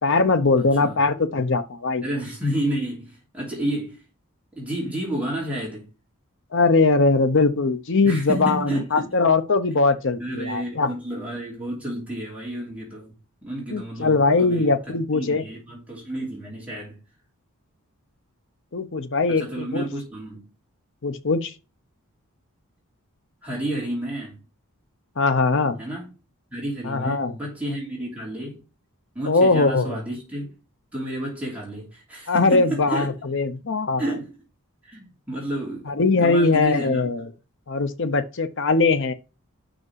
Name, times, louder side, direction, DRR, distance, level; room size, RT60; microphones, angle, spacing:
voice 1, 0.0-2.0 6.5-10.9 13.7-15.4 18.7-19.9 21.0-21.5 25.2-25.8 26.8-27.3 29.3-30.0 32.3-34.0 35.9-37.3 37.7-39.1, left 3 dB, 55° left, 0.8 m, -21 dB
voice 2, 0.6-1.0 2.0-4.0 4.5-5.9 8.0-9.1 10.2-13.1 13.4-17.0 19.3-20.5 23.4-24.4 25.8-26.1 26.5-28.6 29.1-30.5 30.9-33.1 34.0-34.3 34.8-35.9 36.2-37.0, right 1 dB, 5° right, 2.9 m, -31 dB
6.0 x 5.1 x 6.3 m
head